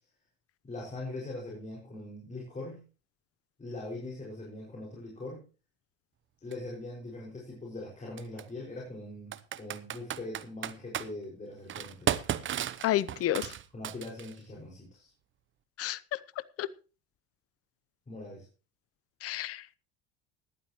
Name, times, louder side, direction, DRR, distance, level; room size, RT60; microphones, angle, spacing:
voice 1, 0.6-2.8 3.6-5.4 6.4-12.1 13.7-15.1 18.1-18.5, left 2 dB, 25° left, 5.8 m, -41 dB
Computer keyboard, 6.5-6.6 8.2-8.4 9.3-11.1 11.7-14.4, right 10 dB, 40° right, 0.8 m, -34 dB
voice 2, 12.8-13.5 15.8-16.2 16.6-16.7 19.2-19.6, left 13 dB, 50° left, 0.8 m, -30 dB
18.0 x 12.0 x 3.1 m
hypercardioid pair, 75°, 31 cm